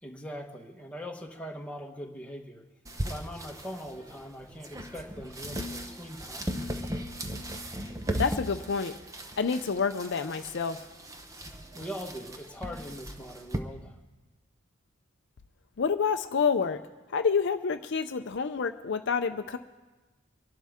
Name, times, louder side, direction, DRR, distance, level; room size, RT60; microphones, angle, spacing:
voice 1, 0.0-2.6 3.0-6.5 11.7-14.0, equal, 5° left, 1 dB, 1.1 m, -41 dB
sound 1, 2.8-13.6, right 1 dB, 15° right, 0.8 m, -37 dB
voice 2, 8.2-8.9 9.4-10.8 15.8-16.8 17.1-19.6, left 5 dB, 60° left, 8 dB, 0.5 m, -28 dB
25.0 x 11.5 x 3.6 m, 1.2 s
head